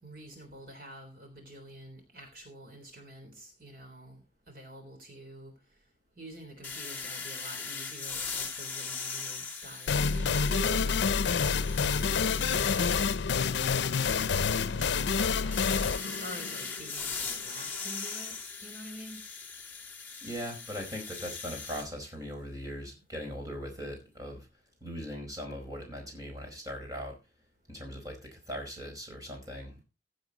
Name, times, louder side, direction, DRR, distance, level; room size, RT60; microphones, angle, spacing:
voice 1, 0.0-5.5 6.2-11.1 11.8-18.3 18.6-19.2, right 1 dB, 50° right, 4 dB, 3.5 m, -47 dB
sound 1, 6.6-10.9 11.3-13.0 15.5-21.9, left 5 dB, 10° left, 1.8 m, -39 dB
sound 2, 9.9-17.3, left 5 dB, 90° left, 0.6 m, -28 dB
voice 2, 20.2-24.5 24.8-27.2 27.7-29.8, equal, 20° right, 1 dB, 4.7 m, -40 dB
16.0 x 8.0 x 3.9 m, 0.27 s
head